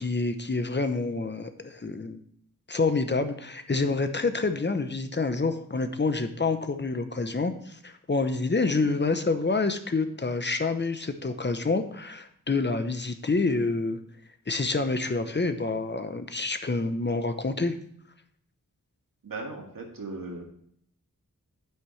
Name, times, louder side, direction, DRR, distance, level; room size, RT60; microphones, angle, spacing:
voice 1, 0.0-2.2 2.7-14.0 14.5-17.7, left 3 dB, 35° left, 8 dB, 0.8 m, -27 dB
voice 2, 19.2-20.4, right 3 dB, 80° right, 1 dB, 2.1 m, -37 dB
9.3 x 8.8 x 3.2 m, 0.66 s
wide cardioid pair, 90°, 33 cm